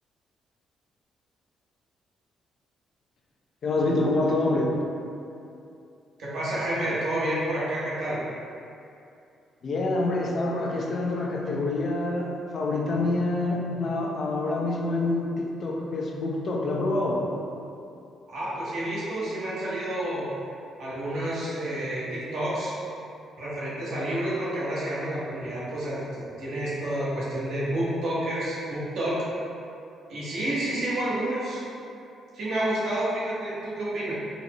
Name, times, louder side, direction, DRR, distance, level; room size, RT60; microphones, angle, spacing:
voice 1, 3.6-4.7 9.6-17.3, left 2 dB, 55° left, -1 dB, 0.4 m, -26 dB
voice 2, 6.2-8.2 18.3-20.3 20.8-22.8 23.4-29.3 30.1-31.6 32.3-34.1, right 1 dB, 70° right, -8 dB, 1.0 m, -29 dB
3.9 x 2.1 x 2.9 m, 2.6 s
cardioid pair, 90°, 0 cm